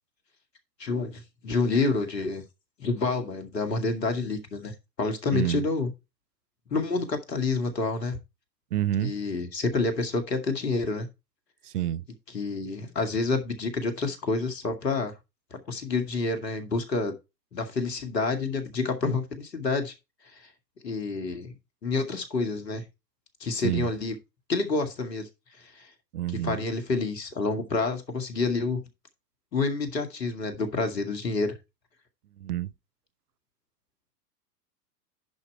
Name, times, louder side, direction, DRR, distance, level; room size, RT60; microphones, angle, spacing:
voice 1, 0.8-2.4 2.8-5.9 6.7-8.2 9.0-11.1 12.3-15.1 15.7-17.1 17.5-19.9 20.8-21.5 21.8-22.8 23.4-24.1 24.5-25.3 25.6-25.9 26.4-28.8 29.5-31.5, left 3 dB, 75° left, 2.3 m, -28 dB
voice 2, 5.3-5.6 8.7-9.1 11.7-12.0 23.6-23.9 26.1-26.6 32.4-32.7, right 12 dB, 65° right, 0.6 m, -27 dB
10.5 x 4.6 x 4.4 m
figure-of-eight pair, 105°, 49 cm